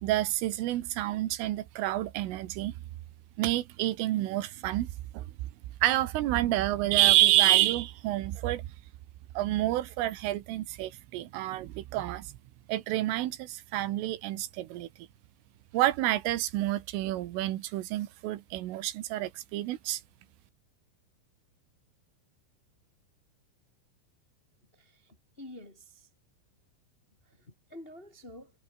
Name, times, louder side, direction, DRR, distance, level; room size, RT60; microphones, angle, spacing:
voice 1, 0.0-2.7 3.4-4.9 5.1-5.3 5.8-8.6 9.4-12.3 12.7-14.9 15.7-20.0, right 15 dB, 85° right, 4.0 m, -28 dB
voice 2, 24.7-26.1 27.7-28.5, left 1 dB, 20° left, 1.7 m, -48 dB
omnidirectional pair, 5.6 m